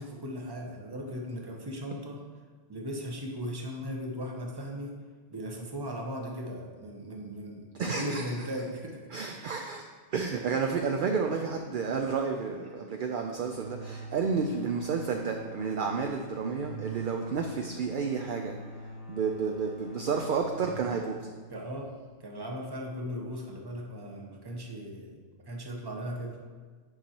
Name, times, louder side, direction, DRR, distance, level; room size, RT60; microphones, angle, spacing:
voice 1, 0.0-2.2 2.7-5.0 5.3-9.0 11.3-11.4 21.5-26.4, equal, 25° right, 1 dB, 0.8 m, -38 dB
voice 2, 7.8-8.2 9.1-9.8 10.1-18.6 19.1-21.2, right 5 dB, 60° right, 3 dB, 0.5 m, -31 dB
sound 1, 13.3-22.8, right 1 dB, 85° left, 1.5 m, -45 dB
9.1 x 5.6 x 2.9 m, 1.5 s
omnidirectional pair, 1.2 m